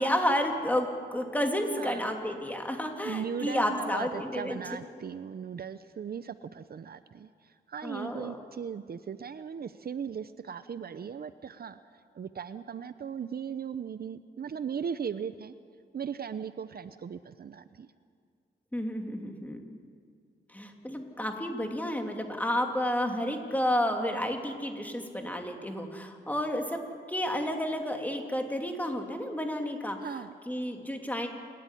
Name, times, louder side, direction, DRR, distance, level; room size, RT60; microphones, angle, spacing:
voice 1, 0.0-4.6 7.8-8.4 18.7-19.8 20.5-26.8 27.1-30.1 30.5-31.3, left 1 dB, 10° left, 3 dB, 2.8 m, -31 dB
voice 2, 1.7-2.1 3.0-11.8 12.1-15.5 15.9-17.9 30.0-30.3, right 7 dB, 55° right, 12 dB, 0.7 m, -38 dB
27.5 x 13.0 x 10.0 m, 2.2 s
wide cardioid pair, 105°, 19 cm